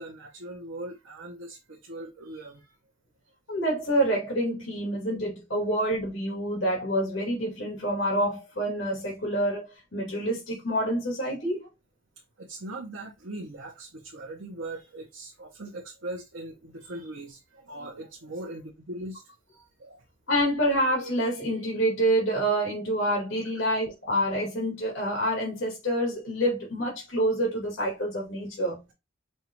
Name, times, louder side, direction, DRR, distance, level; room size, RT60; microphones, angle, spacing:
voice 1, 0.0-2.7 12.4-19.2 19.5-20.0 23.6-23.7, right 1 dB, 65° right, 0.8 m, -40 dB
voice 2, 3.5-11.7 20.3-28.8, right 1 dB, 70° left, 2.3 m, -27 dB
5.4 x 2.4 x 3.0 m
head